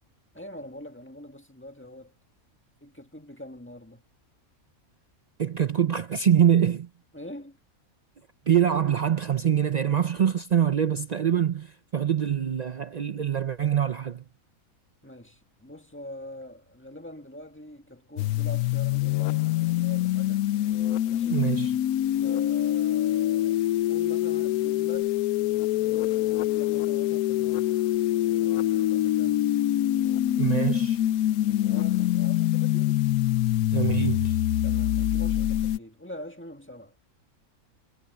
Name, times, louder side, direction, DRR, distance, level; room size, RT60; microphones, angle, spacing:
voice 1, 0.3-2.1 2.8-4.0 7.1-7.6 15.0-20.5 21.1-21.5 22.2-25.2 25.8-27.8 28.3-29.5 31.5-33.0 34.6-37.0, left 1 dB, 10° left, 1.7 m, -44 dB
voice 2, 5.4-6.9 8.5-14.2 21.3-21.8 30.4-31.0 33.7-34.4, right 9 dB, 55° right, 0.4 m, -24 dB
sound 1, 18.2-35.8, left 13 dB, 85° left, 1.1 m, -25 dB
omnidirectional pair, 1.5 m